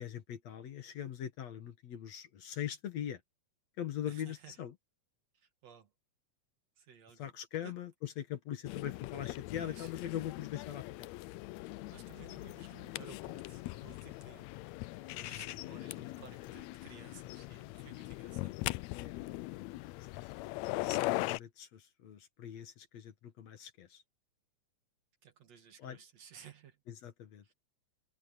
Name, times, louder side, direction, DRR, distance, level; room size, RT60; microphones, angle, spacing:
voice 1, 0.0-3.2 3.8-4.7 7.2-11.1 15.2-15.8 18.9-19.6 20.2-20.3 20.8-24.0 25.8-26.0 26.9-27.4, left 10 dB, 60° left, 2.6 m, -42 dB
voice 2, 4.1-4.6 5.3-5.9 6.8-7.3 7.6-7.8 9.6-9.9 11.9-14.5 15.0-18.6 25.2-26.8 27.4-27.5, right 8 dB, 60° right, 3.2 m, -56 dB
sound 1, 8.6-21.4, left 19 dB, 80° left, 1.6 m, -40 dB
omnidirectional pair, 3.5 m